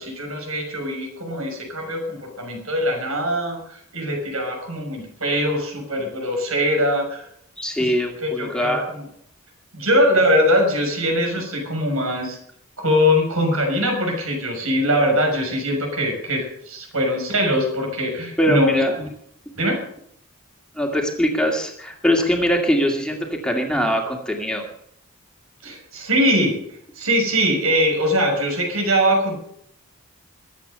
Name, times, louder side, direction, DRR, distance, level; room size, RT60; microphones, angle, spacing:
voice 1, 0.0-7.2 7.8-7.9 8.2-8.8 9.7-12.4 12.8-19.1 19.5-19.8 25.6-26.6 26.9-29.4, equal, 85° right, 3 dB, 6.3 m, -22 dB
voice 2, 7.6-8.8 18.4-18.9 20.7-24.6, equal, 5° left, 1 dB, 2.1 m, -22 dB
22.5 x 8.5 x 6.8 m, 0.69 s
head